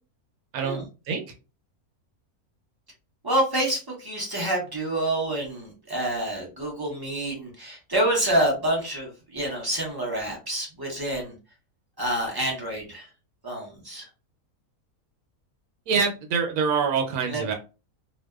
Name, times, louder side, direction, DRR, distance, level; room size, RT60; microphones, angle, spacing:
voice 1, 3.2-11.3 12.0-13.1 13.4-14.1 17.3-17.4, right 1 dB, 40° right, -2 dB, 0.3 m, -27 dB
voice 2, 15.9-17.5, right 5 dB, 80° right, 3 dB, 1.1 m, -25 dB
2.6 x 2.2 x 2.2 m, 0.31 s
omnidirectional pair, 1.6 m